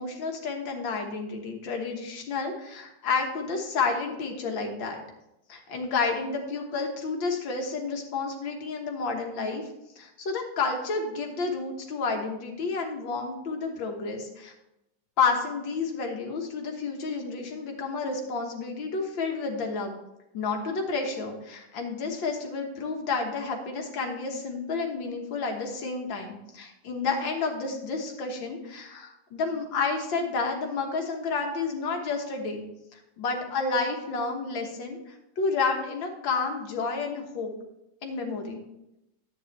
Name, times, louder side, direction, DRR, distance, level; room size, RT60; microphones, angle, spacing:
voice 1, 0.0-5.0 5.5-9.6 10.0-14.5 15.2-20.0 20.3-32.7 32.9-37.5 38.0-38.6, left 4 dB, 90° left, 2 dB, 2.1 m, -30 dB
11.0 x 8.9 x 3.2 m, 0.88 s
omnidirectional pair, 2.0 m